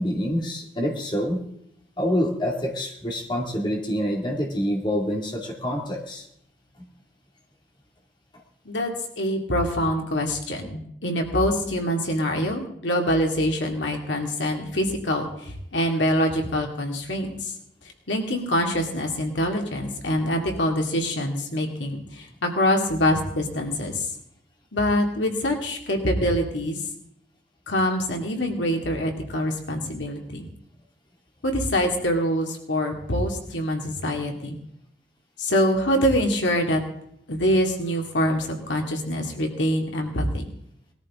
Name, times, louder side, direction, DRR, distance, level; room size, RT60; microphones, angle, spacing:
voice 1, 0.0-1.4 2.0-6.3, equal, 25° left, 0 dB, 2.3 m, -26 dB
voice 2, 8.7-17.5 18.1-24.1 24.7-26.8 27.7-30.5 31.4-34.6 35.4-36.8 37.3-40.5, equal, 85° left, 2 dB, 2.4 m, -25 dB
20.0 x 13.5 x 3.7 m, 0.73 s
head